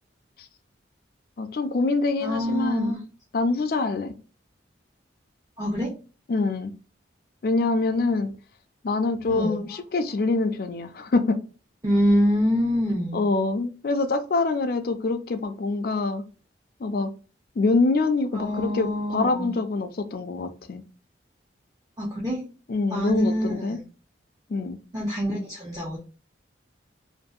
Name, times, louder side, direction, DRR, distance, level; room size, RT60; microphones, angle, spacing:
voice 1, 1.4-3.0 3.3-4.1 6.3-6.7 7.4-8.3 8.8-11.4 13.1-16.2 16.8-17.1 17.6-20.8 22.7-23.8 24.5-24.8, left 3 dB, 55° left, 0.4 m, -25 dB
voice 2, 2.2-3.0 5.6-5.9 9.3-9.6 11.8-13.2 18.3-19.5 22.0-22.4 22.9-23.8 24.9-26.0, equal, 20° right, 0.6 m, -25 dB
2.6 x 2.5 x 2.3 m
head